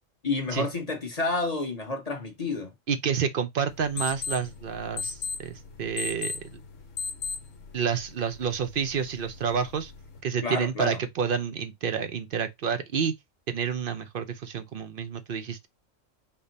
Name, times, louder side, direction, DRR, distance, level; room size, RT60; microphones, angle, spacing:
voice 1, 0.2-2.7 10.4-11.0, left 3 dB, 30° left, 1.2 m, -30 dB
voice 2, 2.9-6.6 7.7-9.9 10.2-13.1 13.5-15.7, right 6 dB, 55° right, 0.6 m, -29 dB
sound 1, 3.7-10.2, left 4 dB, 70° left, 1.3 m, -38 dB
5.5 x 2.2 x 4.0 m
omnidirectional pair, 1.4 m